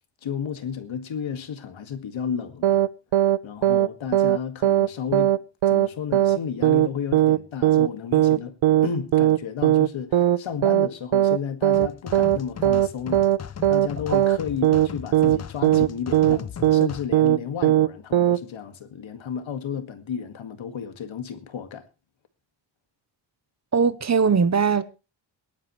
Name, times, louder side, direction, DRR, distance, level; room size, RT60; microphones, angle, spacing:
voice 1, 0.2-2.9 3.2-21.9, left 7 dB, 80° left, 2.0 m, -33 dB
sound 1, 2.6-2.9 3.1-3.4 3.6-4.4 4.6-4.9 5.1-5.4 5.6-5.9 6.1-6.4 6.6-6.9 7.1-7.4 7.6-7.9 8.1-8.4 8.6-8.9 9.1-9.4 9.6-9.9 10.1-10.4 10.6-10.9 11.1-11.4 11.6-11.9 12.1-12.4 12.6-12.9 13.1-13.4 13.6-13.9 14.1-14.4 14.6-14.9 15.1-15.4 15.6-15.9 16.1-16.4 16.6-16.9 17.1-17.4 17.6-17.9 18.1-18.4, right 13 dB, 85° right, 0.8 m, -18 dB
sound 2, 11.7-17.1, left 7 dB, 35° left, 0.6 m, -38 dB
voice 2, 23.7-24.8, right 5 dB, 35° right, 0.9 m, -20 dB
23.0 x 11.5 x 3.2 m
wide cardioid pair, 170°, 46 cm